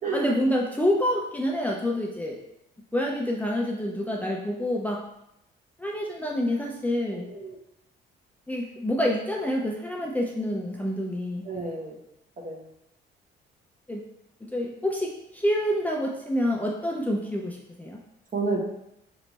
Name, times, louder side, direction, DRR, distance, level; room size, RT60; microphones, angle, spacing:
voice 1, 0.1-2.4 2.9-5.0 5.8-7.3 8.5-11.5 13.9-14.0 14.4-18.0, equal, 10° left, -1 dB, 0.5 m, -27 dB
voice 2, 7.1-7.5 11.5-12.0 12.4-12.6 18.3-18.6, right 3 dB, 40° right, -1 dB, 1.1 m, -30 dB
3.3 x 3.1 x 4.0 m, 0.81 s
cardioid pair, 90°, 20 cm